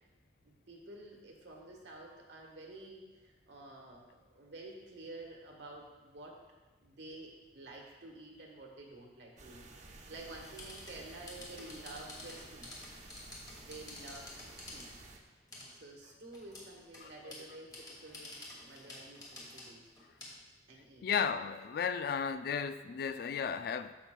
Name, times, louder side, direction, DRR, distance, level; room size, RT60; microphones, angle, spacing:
voice 1, 0.4-6.4 6.8-12.9 13.6-14.9 15.7-18.4 18.6-19.9 20.7-21.1, right 2 dB, 75° right, 0 dB, 1.5 m, -50 dB
sound 1, 9.4-15.2, right 2 dB, 40° right, 0.8 m, -53 dB
sound 2, 10.3-14.9 15.5-15.7 16.3-20.3, left 2 dB, 20° left, 2.0 m, -50 dB
voice 2, 21.0-23.9, left 7 dB, 55° left, 11 dB, 0.3 m, -34 dB
14.0 x 5.6 x 2.3 m, 1.2 s
head